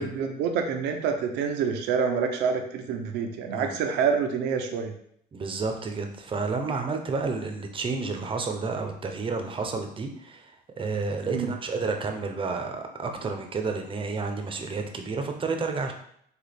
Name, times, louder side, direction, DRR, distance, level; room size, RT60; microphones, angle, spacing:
voice 1, 0.0-4.9 11.3-11.5, right 6 dB, 85° right, 4 dB, 0.7 m, -27 dB
voice 2, 5.3-15.9, right 4 dB, 30° right, 4 dB, 0.7 m, -31 dB
6.2 x 2.5 x 3.4 m, 0.69 s
cardioid pair, 110°, 17 cm